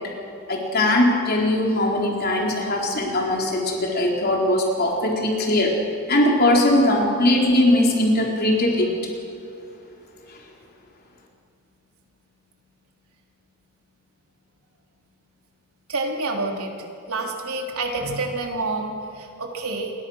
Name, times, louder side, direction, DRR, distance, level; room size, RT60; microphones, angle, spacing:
voice 1, 0.5-5.8 6.1-8.9, left 1 dB, 45° left, 0 dB, 4.0 m, -20 dB
voice 2, 15.9-16.8 17.1-19.9, right 3 dB, 85° right, 1 dB, 3.7 m, -28 dB
27.5 x 22.5 x 6.5 m, 2.6 s
head